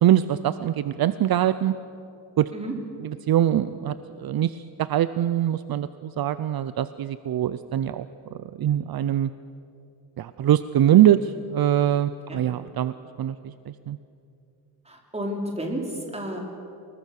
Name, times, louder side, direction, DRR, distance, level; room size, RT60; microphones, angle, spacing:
voice 1, 0.0-1.7 2.4-2.5 3.0-8.1 8.3-9.3 10.2-14.0, right 11 dB, 60° right, 13 dB, 0.6 m, -23 dB
voice 2, 14.8-16.4, equal, 15° right, 1 dB, 3.4 m, -31 dB
25.0 x 21.0 x 6.5 m, 2.6 s
wide cardioid pair, 145°, 41 cm